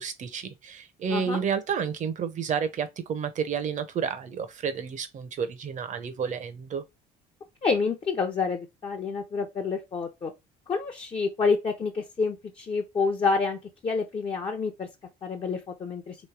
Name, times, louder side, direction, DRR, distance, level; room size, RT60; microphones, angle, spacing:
voice 1, 0.0-6.8, right 7 dB, 45° right, 0.8 m, -30 dB
voice 2, 1.1-1.4 7.6-10.3 10.7-14.9 15.2-16.2, left 4 dB, 35° left, 0.7 m, -28 dB
3.2 x 3.1 x 4.6 m
cardioid pair, 110°, 17 cm